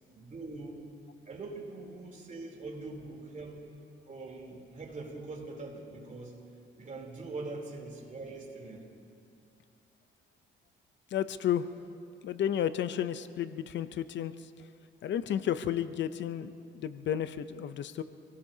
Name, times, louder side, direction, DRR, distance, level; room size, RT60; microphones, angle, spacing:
voice 1, 0.1-0.9 1.2-3.7 4.0-6.5 6.8-8.9, right 3 dB, 40° right, 0 dB, 3.4 m, -43 dB
voice 2, 11.1-11.7 12.2-14.3 15.0-18.0, left 10 dB, 65° left, 12 dB, 0.6 m, -32 dB
27.0 x 18.5 x 2.8 m, 2.5 s
cardioid pair, 90°, 20 cm